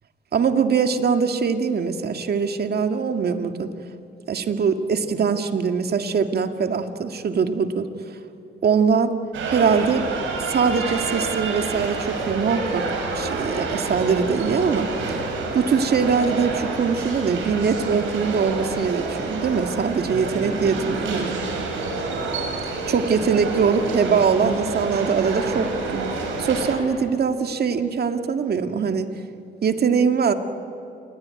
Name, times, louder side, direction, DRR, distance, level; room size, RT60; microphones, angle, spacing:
voice 1, 0.3-3.7 4.3-7.9 8.6-9.1 9.5-10.1 10.4-12.9 13.1-15.2 15.5-21.4 22.9-26.0 26.4-29.1 29.6-30.3, right 6 dB, 55° right, 7 dB, 2.0 m, -22 dB
sound 1, 9.3-26.8, right 3 dB, 80° right, 6.5 m, -28 dB
27.5 x 21.5 x 9.7 m, 2.9 s
cardioid pair, 90°, 20 cm